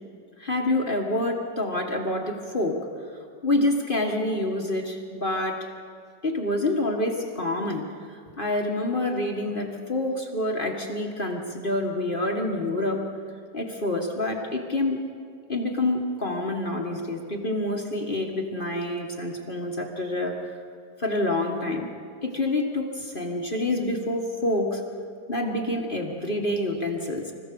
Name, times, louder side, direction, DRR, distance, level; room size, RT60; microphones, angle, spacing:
voice 1, 0.4-2.9 3.4-5.7 6.2-7.9 8.4-13.1 13.5-15.1 15.5-20.5 21.0-21.9 22.2-24.8 25.3-27.3, left 1 dB, 30° left, 2 dB, 1.7 m, -27 dB
25.5 x 15.5 x 6.9 m, 2.3 s
omnidirectional pair, 1.9 m